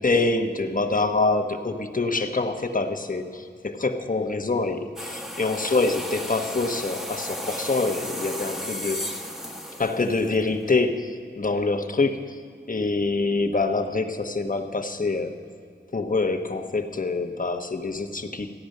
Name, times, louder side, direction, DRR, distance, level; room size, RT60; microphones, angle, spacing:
voice 1, 0.0-9.0 9.8-12.4 12.7-15.4 15.9-18.5, left 3 dB, 45° left, 4 dB, 1.0 m, -25 dB
sound 1, 5.0-10.7, equal, 5° right, 1.0 m, -34 dB
15.0 x 10.0 x 6.5 m, 2.3 s
wide cardioid pair, 65°, 19 cm